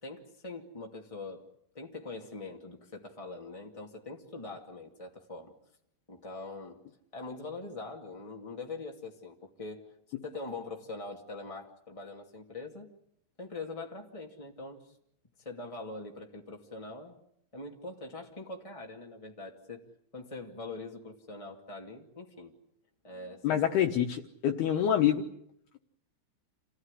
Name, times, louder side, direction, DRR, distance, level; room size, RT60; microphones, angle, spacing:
voice 1, 0.0-1.4 1.7-5.5 6.1-6.8 7.1-9.9 10.2-12.9 13.4-15.0 15.4-17.2 17.5-19.9 20.1-22.5 23.0-23.7, left 3 dB, 20° left, 0 dB, 0.8 m, -43 dB
voice 2, 23.4-25.3, left 10 dB, 70° left, 3 dB, 2.9 m, -26 dB
29.0 x 17.0 x 9.9 m, 0.74 s
omnidirectional pair, 5.3 m